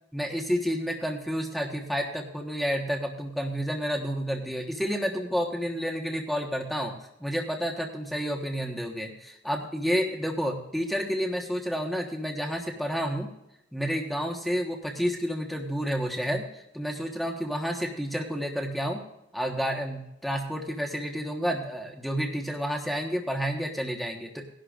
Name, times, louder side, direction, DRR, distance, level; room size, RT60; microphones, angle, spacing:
voice 1, 0.1-6.9 7.2-13.3 13.7-19.0 19.3-24.5, equal, ahead, 1 dB, 1.2 m, -30 dB
20.0 x 11.5 x 2.5 m, 0.83 s
head